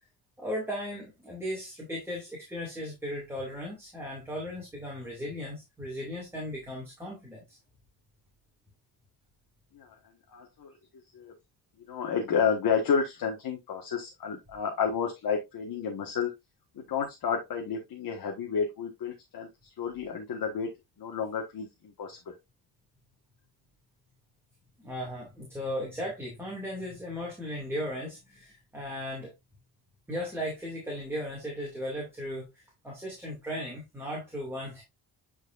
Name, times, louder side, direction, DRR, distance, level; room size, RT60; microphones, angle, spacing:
voice 1, 0.4-7.6 24.8-29.3 30.1-34.8, equal, 5° right, 2.5 m, -36 dB
voice 2, 10.3-10.7 11.1-11.3 11.9-16.3 16.9-19.5 19.8-20.7 21.0-21.7 22.0-22.3, left 6 dB, 55° left, 1.6 m, -30 dB
9.2 x 4.8 x 2.5 m
cardioid pair, 170°, 42 cm